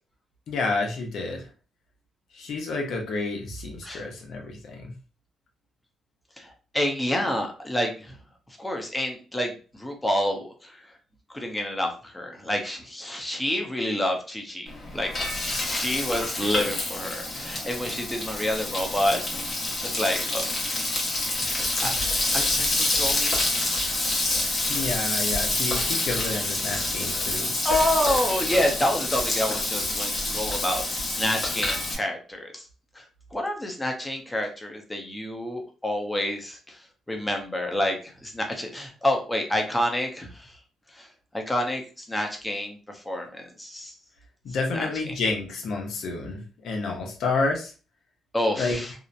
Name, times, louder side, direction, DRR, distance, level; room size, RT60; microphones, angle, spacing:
voice 1, 0.5-1.4 2.3-4.9 21.8-21.9 24.7-27.5 44.4-47.7 48.6-48.8, left 3 dB, 70° left, 1 dB, 0.7 m, -29 dB
voice 2, 6.4-8.2 8.6-10.9 11.3-15.1 15.6-19.2 19.8-20.5 21.3-22.0 22.3-23.4 26.3-26.4 27.6-32.6 32.9-33.1 33.3-36.8 37.1-40.6 40.9-41.1 41.3-43.9 44.7-45.1 48.3-48.9, left 1 dB, 10° left, 3 dB, 0.7 m, -28 dB
Frying (food), 14.7-32.0, left 2 dB, 45° left, 1.0 m, -27 dB
2.8 x 2.1 x 2.5 m, 0.36 s
cardioid pair, 90°, 0 cm